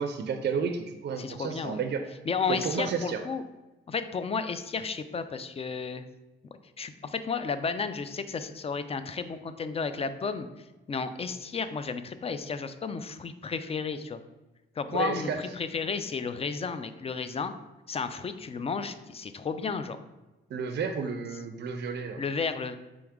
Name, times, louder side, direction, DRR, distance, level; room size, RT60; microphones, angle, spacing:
voice 1, 0.0-2.0 2.5-3.2 14.9-15.4 20.5-22.2, right 6 dB, 55° right, 6 dB, 0.4 m, -31 dB
voice 2, 1.2-1.8 2.3-3.4 3.9-6.0 6.8-10.5 10.9-14.2 14.8-17.5 17.9-20.0 22.2-22.8, left 5 dB, 30° left, 11 dB, 0.4 m, -32 dB
4.6 x 3.1 x 3.6 m, 1.1 s
cardioid pair, 80°, 21 cm